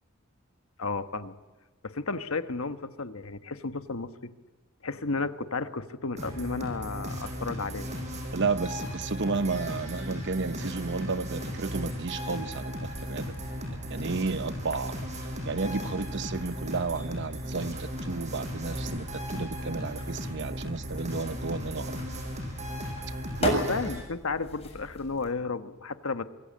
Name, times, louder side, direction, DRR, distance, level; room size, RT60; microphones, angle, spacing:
voice 1, 0.8-1.3 1.8-4.3 4.8-7.9 23.5-26.2, left 3 dB, 85° left, 1.3 m, -33 dB
sound 1, 6.2-24.0, equal, 35° right, 6.0 m, -36 dB
voice 2, 8.3-12.7 13.0-14.9 15.5-22.0 23.4-23.6, right 4 dB, 60° right, 0.8 m, -32 dB
sound 2, 12.7-25.3, left 1 dB, 30° left, 7.2 m, -40 dB
25.0 x 22.0 x 8.6 m
head